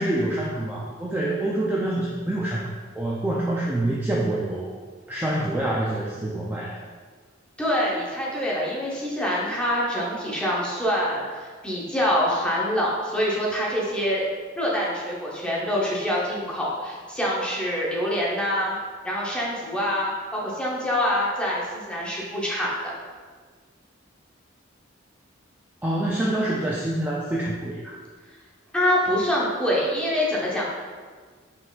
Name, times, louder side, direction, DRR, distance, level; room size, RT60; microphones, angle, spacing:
voice 1, 0.0-2.7 3.0-4.7 5.1-6.8 25.8-28.0, right 1 dB, 10° right, -4 dB, 0.3 m, -26 dB
voice 2, 7.6-14.2 14.6-18.7 19.0-22.7 28.7-30.7, equal, 5° left, -5 dB, 0.7 m, -25 dB
4.2 x 3.8 x 2.3 m, 1.5 s
head